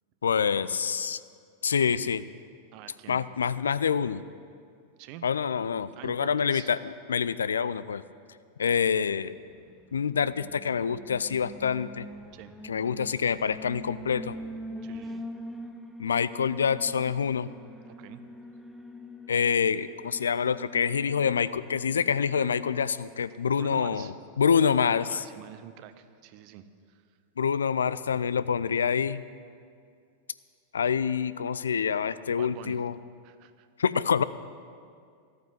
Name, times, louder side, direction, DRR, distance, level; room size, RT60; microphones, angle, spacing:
voice 1, 0.2-1.2 1.6-2.2 3.1-4.2 5.2-8.0 8.6-9.3 9.9-12.1 12.7-14.3 16.0-17.5 19.3-25.2 27.4-29.2 30.7-33.0 33.8-34.2, left 7 dB, 70° left, 16 dB, 0.4 m, -26 dB
voice 2, 2.7-3.2 5.0-5.3 6.0-6.7 12.3-12.5 14.8-15.2 18.0-18.2 23.5-24.1 24.6-27.0 32.3-32.8 33.2-33.7, right 11 dB, 45° right, 11 dB, 0.8 m, -46 dB
Alarm, 9.5-22.9, equal, ahead, 1.0 m, -44 dB
14.0 x 9.5 x 7.7 m, 2.3 s
figure-of-eight pair, 90°, 0 cm